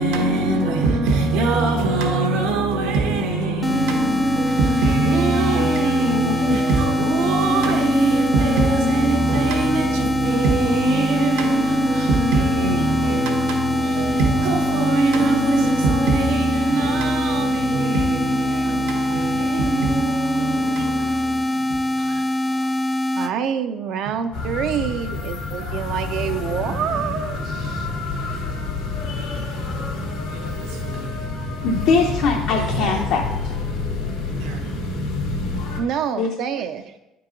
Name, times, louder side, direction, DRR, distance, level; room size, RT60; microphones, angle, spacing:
voice 1, 0.0-22.8 28.1-28.6 29.3-29.4 30.3-31.2 32.5-33.0 34.3-34.8, right 2 dB, 90° right, 1.3 m, -22 dB
sound 1, 3.6-23.3, left 1 dB, 10° left, 0.3 m, -23 dB
voice 2, 23.1-27.4 27.6-27.9 31.8-31.9 35.8-36.8, right 8 dB, 60° right, 0.4 m, -26 dB
sound 2, 24.3-35.8, left 3 dB, 90° left, 1.8 m, -28 dB
voice 3, 31.6-33.5 36.2-36.3, left 4 dB, 65° left, 0.8 m, -21 dB
9.4 x 4.7 x 3.8 m
cardioid pair, 130°, 0 cm